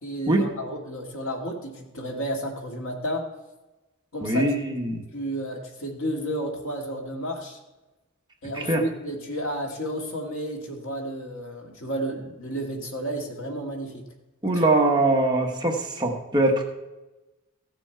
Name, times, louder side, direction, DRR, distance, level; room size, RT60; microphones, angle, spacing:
voice 1, 0.0-3.2 4.1-4.5 4.9-7.6 8.4-14.0 14.5-14.7, equal, 70° left, 1 dB, 1.8 m, -32 dB
voice 2, 4.2-5.0 8.7-8.8 14.4-16.6, right 2 dB, 20° right, 1 dB, 1.1 m, -22 dB
15.0 x 7.0 x 4.4 m, 1.1 s
head